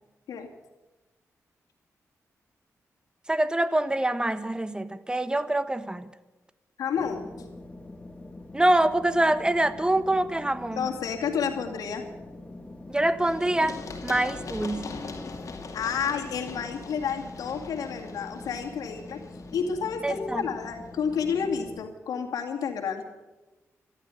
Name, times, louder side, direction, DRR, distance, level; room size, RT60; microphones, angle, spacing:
voice 1, 3.3-6.1 8.5-10.9 12.9-14.9 20.0-20.4, right 1 dB, 15° right, 13 dB, 1.2 m, -25 dB
voice 2, 6.8-7.2 10.7-12.0 15.7-19.2 19.5-23.0, left 6 dB, 90° left, 3 dB, 2.3 m, -30 dB
sound 1, 7.0-21.8, left 2 dB, 20° left, 2.7 m, -44 dB
Run, 13.2-20.9, left 4 dB, 60° left, 2.6 m, -42 dB
14.0 x 12.0 x 8.4 m, 1.1 s
cardioid pair, 65°, 6 cm